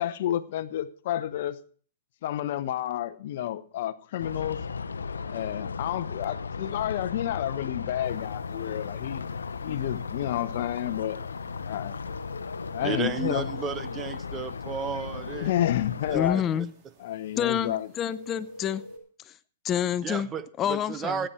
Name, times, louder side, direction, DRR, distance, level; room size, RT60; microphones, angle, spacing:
voice 1, 0.0-1.6 2.2-4.6 5.3-9.3 9.6-11.2 11.6-12.0 12.7-13.5 15.4-16.4 17.0-17.9, left 12 dB, 60° left, 0.8 m, -30 dB
sound 1, 4.2-16.3, left 5 dB, 90° left, 0.7 m, -36 dB
sound 2, 8.0-19.0, left 1 dB, 40° right, 3.3 m, -49 dB
voice 2, 12.8-15.5 16.1-16.4 20.0-21.3, right 6 dB, 20° right, 0.7 m, -33 dB
voice 3, 16.1-16.7 17.4-18.8 19.6-20.3 20.6-21.2, left 9 dB, 25° left, 0.7 m, -27 dB
16.5 x 9.0 x 4.3 m
hypercardioid pair, 120°, 0 cm